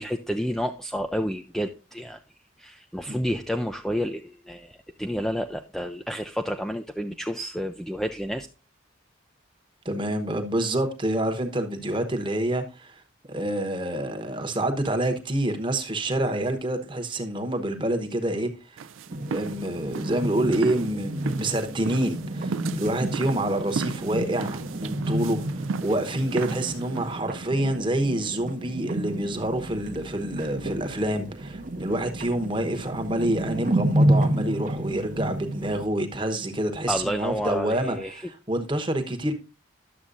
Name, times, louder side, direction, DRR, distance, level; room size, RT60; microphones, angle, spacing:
voice 1, 0.0-2.2 2.6-8.5 36.9-38.2, equal, ahead, 0.3 m, -30 dB
voice 2, 9.8-13.0 13.3-18.8 19.3-39.3, right 1 dB, 25° right, 1.0 m, -27 dB
sound 1, 18.8-27.2, right 4 dB, 75° right, 0.4 m, -35 dB
sound 2, 19.1-35.9, right 1 dB, 40° right, 0.7 m, -30 dB
11.0 x 7.3 x 2.5 m
head